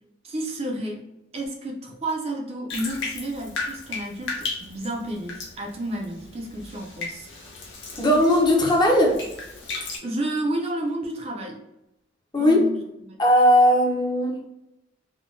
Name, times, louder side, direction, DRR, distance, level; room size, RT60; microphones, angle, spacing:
voice 1, 0.2-1.0 1.3-7.3 10.0-11.6 12.4-13.2, right 1 dB, 35° right, 0 dB, 0.5 m, -31 dB
Bathtub (filling or washing), 2.7-10.0, left 3 dB, 65° left, 0.7 m, -35 dB
voice 2, 8.0-9.2 12.3-12.6 13.2-14.5, equal, 25° left, -1 dB, 0.7 m, -18 dB
3.6 x 2.2 x 2.5 m, 0.87 s
head